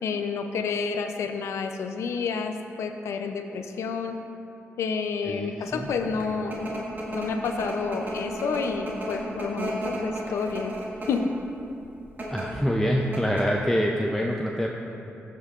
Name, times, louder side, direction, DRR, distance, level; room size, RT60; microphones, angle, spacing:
voice 1, 0.0-4.2 4.8-6.9 7.1-10.8 11.1-11.3, left 5 dB, 85° left, 6 dB, 0.5 m, -29 dB
voice 2, 5.2-5.9 12.3-14.7, equal, 5° left, -1 dB, 0.5 m, -26 dB
sound 1, 5.9-11.3 12.0-12.4 12.8-12.9 13.1-13.6, right 1 dB, 45° right, 1.8 m, -33 dB
13.5 x 5.5 x 2.4 m, 2.8 s
cardioid pair, 65°, 5 cm